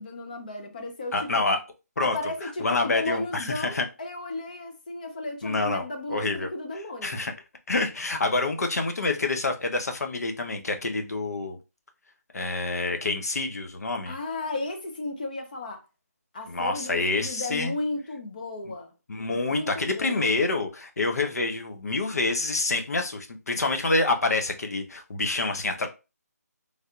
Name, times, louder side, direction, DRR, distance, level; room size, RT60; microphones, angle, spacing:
voice 1, 0.0-1.4 2.0-7.3 14.1-15.8 16.3-18.9 19.3-20.3, left 2 dB, 30° left, 0.5 m, -34 dB
voice 2, 1.1-1.6 2.0-2.1 2.6-3.8 5.4-6.5 7.0-7.3 7.7-11.6 12.3-14.1 16.5-17.7 19.1-25.9, left 3 dB, 65° left, 0.8 m, -27 dB
3.4 x 2.7 x 2.4 m
figure-of-eight pair, 170°, 9 cm